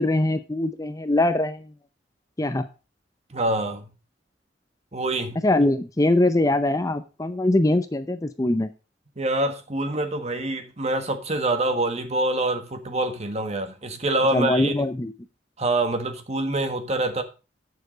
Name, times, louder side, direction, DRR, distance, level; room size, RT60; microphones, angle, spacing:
voice 1, 0.0-1.7 2.4-2.6 5.4-8.7 14.3-15.1, left 1 dB, 20° left, 0.6 m, -22 dB
voice 2, 3.3-3.9 4.9-5.4 9.2-14.9 15.6-17.2, right 2 dB, 35° right, 1.5 m, -25 dB
9.7 x 6.8 x 5.1 m
head